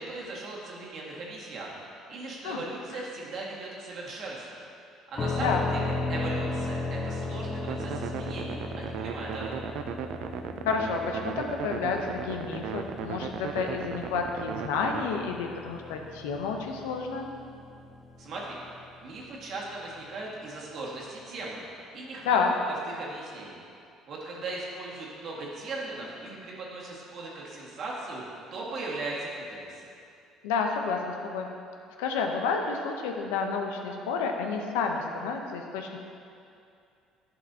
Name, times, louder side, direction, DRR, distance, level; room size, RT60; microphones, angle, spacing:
voice 1, 0.0-1.8 2.1-4.6 5.1-9.7 18.2-18.6 19.0-21.6 21.9-22.4 22.9-23.6 24.1-28.2 28.5-29.9, right 2 dB, 55° right, -4 dB, 1.7 m, -38 dB
sound 1, 5.2-18.9, left 2 dB, 35° left, 0.6 m, -36 dB
sound 2, 7.7-15.0, right 9 dB, 70° right, 0.3 m, -37 dB
voice 2, 10.7-17.3 22.2-22.5 30.4-31.5 32.0-36.0, left 5 dB, 90° left, 3 dB, 0.7 m, -30 dB
11.0 x 5.4 x 2.7 m, 2.5 s
supercardioid pair, 80°, 0 cm